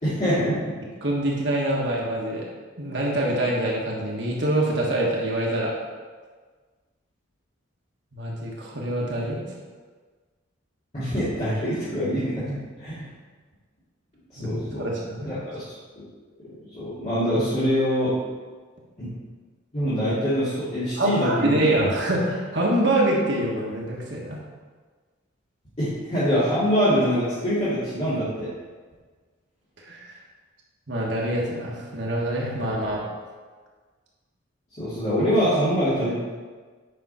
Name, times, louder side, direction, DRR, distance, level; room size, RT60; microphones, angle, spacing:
voice 1, 0.0-0.6 10.9-13.1 14.3-14.9 15.2-15.6 16.7-18.1 19.0-19.1 19.7-21.9 25.8-28.5 34.8-36.2, equal, 35° left, -14 dB, 2.7 m, -24 dB
voice 2, 1.0-2.5 2.8-5.7 8.1-9.4 14.4-15.3 21.0-24.4 29.8-30.1 30.9-33.1, right 1 dB, 60° right, -3 dB, 1.5 m, -25 dB
9.0 x 5.7 x 4.3 m, 1.4 s
head